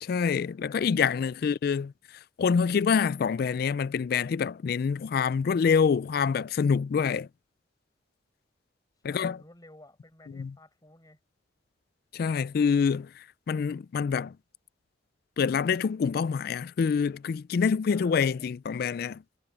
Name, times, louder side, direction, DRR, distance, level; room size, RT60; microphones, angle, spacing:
voice 1, 0.0-1.9 2.4-7.3 9.0-9.4 10.3-10.5 12.1-14.3 15.4-19.2, left 6 dB, 55° left, 0.3 m, -26 dB
voice 2, 0.7-1.4 9.0-11.2 17.9-18.5, left 1 dB, 20° left, 5.4 m, -54 dB
head